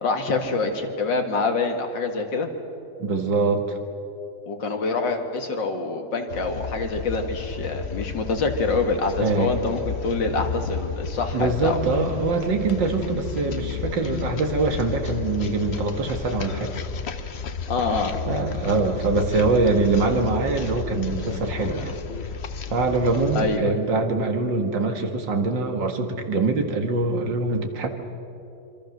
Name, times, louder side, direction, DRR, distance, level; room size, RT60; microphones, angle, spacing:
voice 1, 0.0-2.5 4.5-11.8 17.7-18.2 23.3-23.8, left 3 dB, 85° left, 5 dB, 2.7 m, -26 dB
voice 2, 3.0-3.8 9.2-9.6 11.3-16.7 18.3-22.0 22.7-27.9, right 3 dB, 85° right, 5 dB, 2.5 m, -23 dB
sound 1, 6.3-23.6, left 6 dB, 45° left, 1.0 m, -32 dB
26.0 x 24.5 x 6.6 m, 2.9 s
omnidirectional pair, 1.9 m